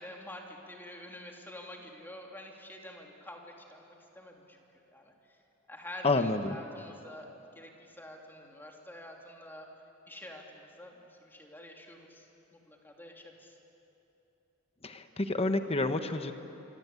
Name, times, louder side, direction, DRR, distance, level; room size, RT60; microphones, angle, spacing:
voice 1, 0.0-4.6 4.9-5.4 5.7-7.3 7.5-9.7 10.1-13.6, left 1 dB, 10° left, 0 dB, 3.0 m, -48 dB
voice 2, 6.0-6.6 14.8-16.3, left 2 dB, 30° left, 8 dB, 1.1 m, -29 dB
26.0 x 24.5 x 8.4 m, 2.9 s
head